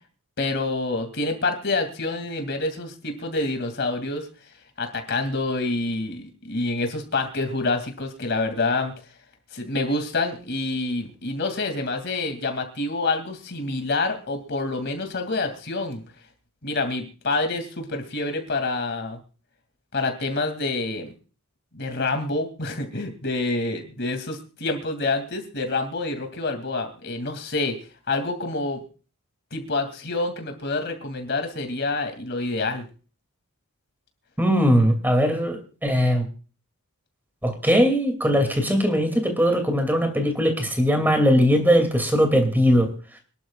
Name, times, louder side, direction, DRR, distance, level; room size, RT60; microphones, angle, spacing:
voice 1, 0.4-4.3 4.8-8.9 9.5-16.0 16.6-19.2 19.9-21.1 21.7-27.8 28.1-28.8 29.5-32.9, left 3 dB, 50° left, 6 dB, 2.6 m, -27 dB
voice 2, 34.4-36.2 37.4-42.9, equal, 10° right, 5 dB, 2.5 m, -20 dB
26.0 x 11.5 x 2.4 m, 0.37 s
head